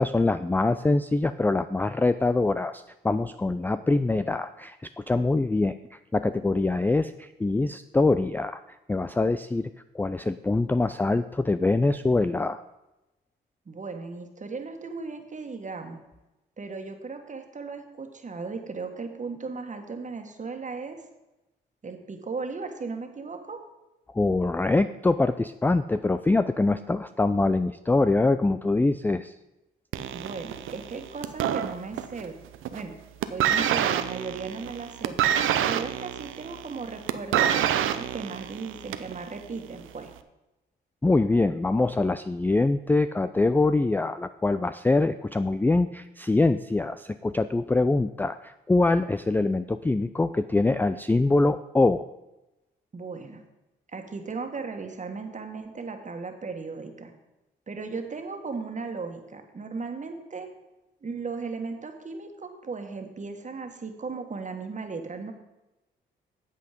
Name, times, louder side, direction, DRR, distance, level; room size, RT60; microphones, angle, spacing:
voice 1, 0.0-8.6 8.9-9.7 9.9-12.6 24.1-29.3 41.0-52.1, left 2 dB, 10° left, 12 dB, 0.3 m, -24 dB
voice 2, 13.6-16.0 16.6-21.0 21.8-23.6 30.1-32.3 32.7-33.0 33.3-35.2 35.6-40.1 52.9-53.4 53.9-57.1 57.7-60.5 61.0-65.3, right 4 dB, 35° right, 5 dB, 1.6 m, -36 dB
sound 1, 29.9-32.3 32.5-32.9 33.2-39.2 40.0-40.1, right 10 dB, 80° right, 0.6 m, -27 dB
8.3 x 7.7 x 5.1 m, 0.98 s
supercardioid pair, 60°, 20 cm